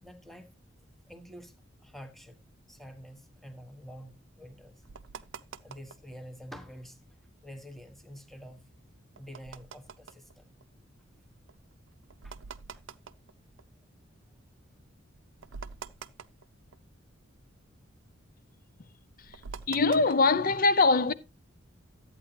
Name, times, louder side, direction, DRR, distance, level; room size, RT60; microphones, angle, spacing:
voice 1, 0.0-0.5 1.1-1.5 1.8-2.4 2.7-4.8 5.6-7.0 7.4-8.8 9.2-10.5 12.2-12.3 12.7-12.8, equal, ahead, 1.3 m, -48 dB
sound 1, 3.0-6.2 6.6-7.2 7.6-14.3 14.7-14.8 15.1-17.2 17.5-20.5, right 5 dB, 70° right, 0.5 m, -47 dB
voice 2, 19.7-21.1, left 3 dB, 45° left, 0.7 m, -22 dB
13.0 x 8.9 x 2.9 m
head